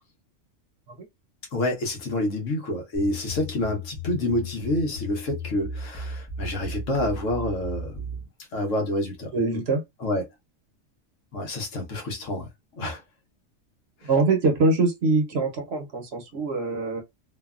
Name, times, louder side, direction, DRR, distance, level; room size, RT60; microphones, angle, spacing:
voice 1, 1.5-8.0 8.5-9.3 10.0-10.2 11.3-12.5 12.8-13.0, left 1 dB, 70° left, 1.3 m, -28 dB
sound 1, 2.9-8.2, left 1 dB, 20° left, 0.8 m, -35 dB
voice 2, 9.3-9.8 14.0-17.0, right 3 dB, 55° right, 1.0 m, -23 dB
3.2 x 2.2 x 2.4 m
omnidirectional pair, 1.4 m